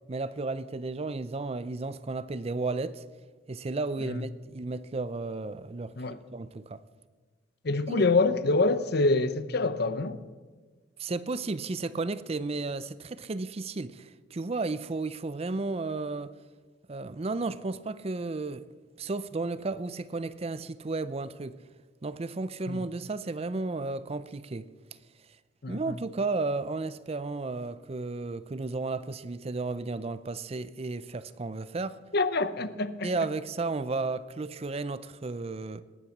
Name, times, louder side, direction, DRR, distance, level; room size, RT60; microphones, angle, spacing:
voice 1, 0.1-3.0 3.5-5.9 6.3-6.8 7.9-8.1 11.0-16.4 16.9-18.7 19.0-21.6 22.0-24.7 25.7-32.0 33.0-35.8, right 3 dB, 30° right, 0.5 m, -33 dB
voice 2, 7.6-10.2 22.7-22.8 25.6-26.0 32.1-33.1, left 3 dB, 55° left, 0.8 m, -26 dB
19.0 x 8.9 x 7.2 m
head